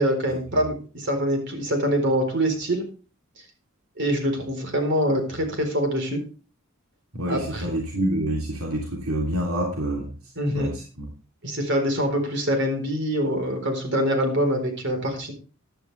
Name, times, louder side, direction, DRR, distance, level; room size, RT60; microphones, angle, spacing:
voice 1, 0.0-2.9 4.0-6.3 7.3-7.6 10.4-10.7 11.4-15.3, equal, 55° right, 5 dB, 4.1 m, -24 dB
voice 2, 7.1-10.1 10.5-11.1, right 1 dB, 80° right, -1 dB, 3.0 m, -27 dB
15.0 x 11.5 x 3.3 m, 0.35 s
head